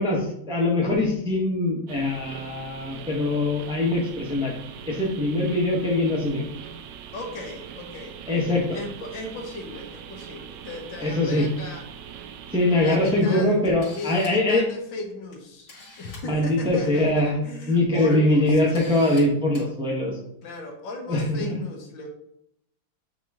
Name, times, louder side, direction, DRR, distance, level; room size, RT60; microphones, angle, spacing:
voice 1, 0.0-4.5 4.9-6.4 8.3-8.8 11.0-11.5 12.5-14.7 16.2-17.3 17.7-20.2 21.1-21.6, left 2 dB, 5° right, -2 dB, 0.7 m, -22 dB
sound 1, 1.9-13.2, right 8 dB, 75° right, 1.2 m, -41 dB
voice 2, 7.1-8.2 8.7-11.8 12.5-13.6 13.9-15.7 16.0-18.6 20.4-22.1, left 2 dB, 70° left, 3 dB, 1.7 m, -36 dB
Camera, 13.1-13.2 13.6-14.5 15.3-15.4 15.7-16.2 17.4-17.6 18.1-18.2 18.7-19.2 19.5-19.7, left 2 dB, 45° left, 2.6 m, -44 dB
9.0 x 3.0 x 3.6 m, 0.76 s
omnidirectional pair, 2.1 m